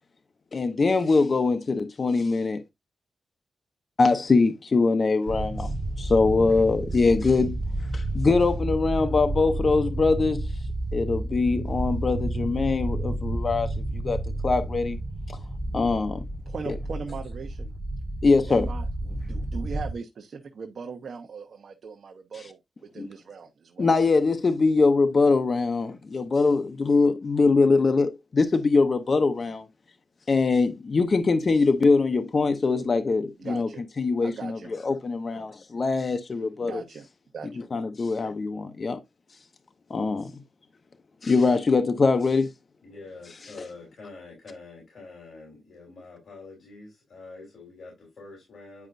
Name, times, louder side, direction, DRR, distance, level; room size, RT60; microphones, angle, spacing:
voice 1, 0.5-2.6 4.0-5.7 6.0-7.6 7.9-10.5 10.9-13.7 14.0-14.2 14.4-15.0 15.3-15.4 15.7-16.2 16.7-16.8 18.2-18.7 23.0-23.1 23.8-29.7 30.3-33.7 34.0-36.8 37.7-39.0 39.9-40.3 41.2-42.5, left 4 dB, 40° left, 0.7 m, -22 dB
sound 1, 5.3-19.9, right 1 dB, 20° right, 1.2 m, -31 dB
voice 2, 16.5-17.7 18.5-23.9 33.4-33.8 34.2-34.7 35.3-35.5 36.6-37.1 37.3-37.6, right 5 dB, 60° right, 0.9 m, -39 dB
voice 3, 42.8-48.9, left 3 dB, 60° left, 3.7 m, -45 dB
9.5 x 5.0 x 2.6 m
wide cardioid pair, 115°, 0 cm